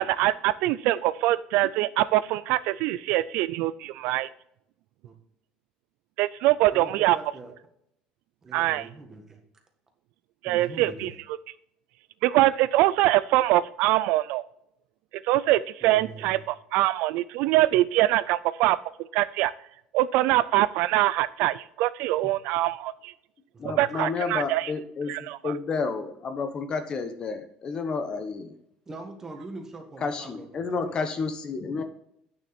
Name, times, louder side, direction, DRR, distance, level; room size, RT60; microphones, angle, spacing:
voice 1, 0.0-4.3 6.2-7.2 8.5-8.9 10.4-11.1 12.2-14.4 15.2-18.8 19.1-19.5 19.9-23.1 23.6-24.7 25.1-25.5, right 16 dB, 75° right, 16 dB, 0.3 m, -23 dB
voice 2, 6.7-7.5 8.4-9.4 10.4-11.1 15.8-16.4 23.5-23.9 28.8-30.9, right 3 dB, 20° right, 4 dB, 1.7 m, -42 dB
voice 3, 23.6-28.5 30.0-31.8, left 4 dB, 30° left, 9 dB, 1.1 m, -31 dB
9.1 x 6.3 x 4.3 m, 0.74 s
cardioid pair, 150°, 3 cm